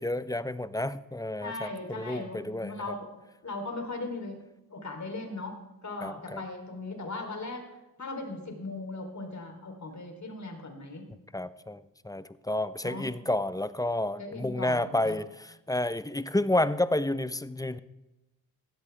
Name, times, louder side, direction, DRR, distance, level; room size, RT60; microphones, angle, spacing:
voice 1, 0.0-2.8 6.0-6.4 11.3-17.8, left 1 dB, 10° left, 15 dB, 0.8 m, -30 dB
voice 2, 1.4-3.2 3.4-4.4 4.7-7.7 8.0-11.0 12.8-13.1 14.2-15.2, left 2 dB, 40° left, 3 dB, 3.7 m, -38 dB
16.0 x 13.0 x 3.5 m, 0.97 s
hypercardioid pair, 45°, 44 cm